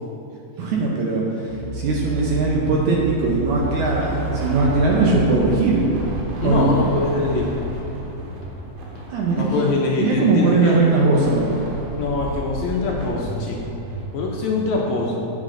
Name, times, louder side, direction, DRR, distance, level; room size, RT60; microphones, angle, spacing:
voice 1, 0.6-5.8 6.4-6.7 9.1-9.7 10.0-11.6, right 3 dB, 70° right, -3 dB, 2.0 m, -20 dB
sound 1, 1.5-9.2, right 2 dB, 65° left, 1.8 m, -31 dB
sound 2, 2.1-14.7, right 2 dB, 90° right, 3.0 m, -34 dB
voice 2, 6.4-7.5 9.4-10.8 12.0-13.7 14.1-15.1, left 3 dB, 80° left, -2 dB, 1.6 m, -23 dB
8.9 x 7.6 x 3.8 m, 2.9 s
omnidirectional pair, 4.1 m